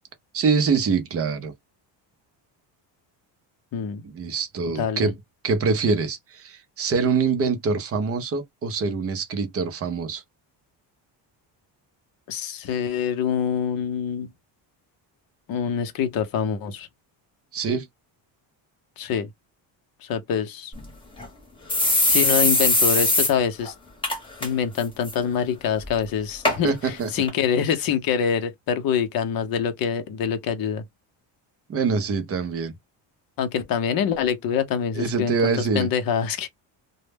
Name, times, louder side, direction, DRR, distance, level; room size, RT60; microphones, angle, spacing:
voice 1, 0.3-1.5 4.0-5.2 5.4-10.2 17.5-17.9 26.6-27.1 31.7-32.7 34.9-35.9, right 5 dB, 35° right, 0.5 m, -24 dB
voice 2, 3.7-4.0 4.8-5.1 12.3-14.3 15.5-16.9 19.0-19.3 20.0-20.7 22.0-23.7 24.4-30.8 33.4-36.5, left 7 dB, 50° left, 0.6 m, -25 dB
sound 1, 20.8-20.9 21.2-21.3 21.7-23.3 23.6-23.7 24.0-24.5 24.8-25.1 25.8-25.9 26.4-26.6 27.3-27.4, left 2 dB, 10° left, 0.8 m, -20 dB
2.1 x 2.0 x 3.2 m
cardioid pair, 145°, 45 cm